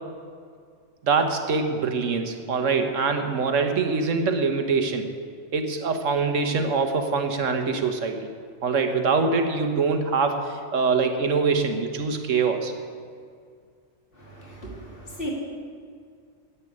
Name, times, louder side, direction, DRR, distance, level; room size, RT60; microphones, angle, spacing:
voice 1, 1.0-5.0 5.5-8.3 8.6-12.7, right 4 dB, 70° right, 6 dB, 1.5 m, -24 dB
voice 2, 14.2-15.3, equal, 45° left, -3 dB, 2.9 m, -36 dB
10.0 x 8.2 x 9.8 m, 2.2 s
omnidirectional pair, 1.4 m